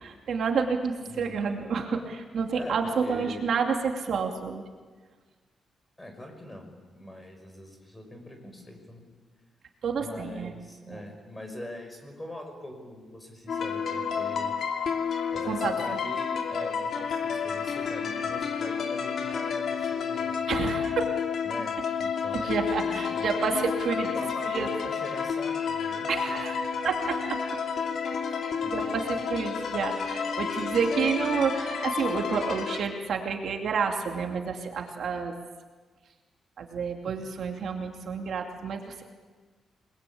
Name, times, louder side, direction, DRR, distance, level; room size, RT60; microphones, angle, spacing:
voice 1, 0.0-4.6 9.8-10.5 10.9-11.0 15.4-16.0 20.5-21.0 22.3-24.1 24.4-24.7 26.1-27.4 28.7-35.3 36.6-39.0, right 5 dB, 60° right, 3 dB, 2.7 m, -29 dB
voice 2, 1.0-1.5 2.5-2.8 3.0-3.5 6.0-9.1 10.0-14.5 15.3-20.6 21.4-23.3 24.0-26.4 28.6-28.7, left 1 dB, 10° left, 4 dB, 5.8 m, -42 dB
sound 1, 13.5-32.8, left 6 dB, 55° left, 2.8 m, -30 dB
29.5 x 22.0 x 8.7 m, 1.4 s
wide cardioid pair, 160°, 0 cm